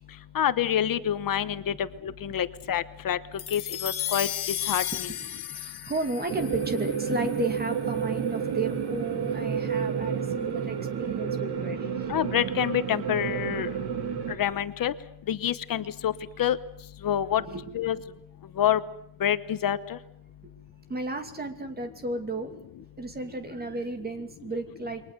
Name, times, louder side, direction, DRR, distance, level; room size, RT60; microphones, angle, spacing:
voice 1, 0.3-1.7 2.0-3.2 3.5-4.3 4.7-5.1 12.1-13.7 14.4-14.9 15.3-16.1 16.4-16.6 17.0-17.4 17.7-18.0 18.6-18.8 19.2-19.8, left 10 dB, 60° left, 12 dB, 1.1 m, -26 dB
sound 1, 3.4-7.9, left 11 dB, 85° left, 1.9 m, -34 dB
voice 2, 5.5-11.9 17.5-17.7 20.9-22.6 23.0-25.0, right 2 dB, 25° right, 7 dB, 2.6 m, -33 dB
sound 2, 6.3-14.4, right 7 dB, 85° right, 2.9 m, -30 dB
28.5 x 23.5 x 6.8 m, 0.76 s
wide cardioid pair, 180°, 38 cm